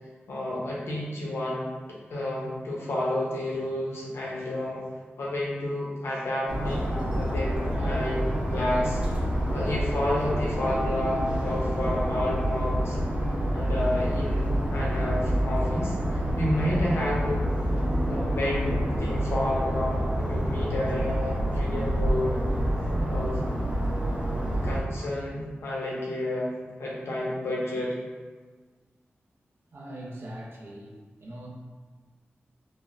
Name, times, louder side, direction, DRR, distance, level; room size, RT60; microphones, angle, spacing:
voice 1, 0.3-4.8 5.2-9.0 9.5-13.0 13.5-15.9 16.3-17.5 18.0-22.4 23.0-23.4 24.6-26.5 26.8-28.0, left 1 dB, 85° left, -4 dB, 0.7 m, -30 dB
sound 1, 6.5-24.8, equal, 30° right, 0.8 m, -27 dB
voice 2, 29.7-30.9 31.2-31.5, right 1 dB, 65° right, -3 dB, 0.6 m, -41 dB
3.4 x 2.1 x 2.5 m, 1.4 s
wide cardioid pair, 75°, 4 cm